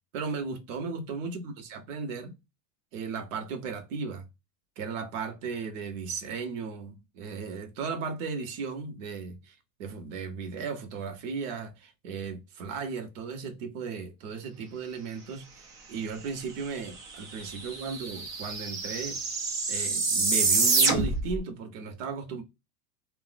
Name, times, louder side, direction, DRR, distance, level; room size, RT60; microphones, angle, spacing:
voice 1, 0.1-2.3 2.9-4.3 4.8-19.2 19.7-22.4, right 5 dB, 55° right, 0.8 m, -36 dB
sound 1, 16.9-17.0 17.2-21.4, right 4 dB, 25° right, 0.4 m, -27 dB
2.5 x 2.0 x 3.9 m
supercardioid pair, 160°, 47 cm